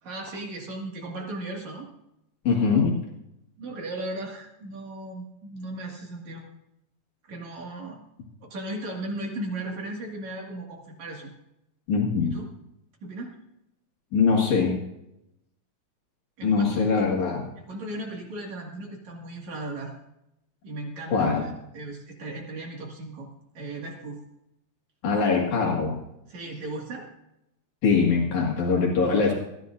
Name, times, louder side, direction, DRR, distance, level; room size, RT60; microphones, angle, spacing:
voice 1, 0.0-1.9 3.6-6.4 7.2-8.1 8.5-11.3 12.2-12.5 13.0-13.3 16.4-17.0 17.6-19.9 20.6-23.3 23.6-24.2 26.3-27.1 29.0-29.3, right 2 dB, 65° right, 0 dB, 3.4 m, -36 dB
voice 2, 2.5-3.0 11.9-12.4 14.1-14.8 16.4-17.5 21.1-21.5 25.0-26.0 27.8-29.3, left 5 dB, 75° left, -2 dB, 3.5 m, -22 dB
21.0 x 14.0 x 2.6 m, 0.83 s
omnidirectional pair, 3.5 m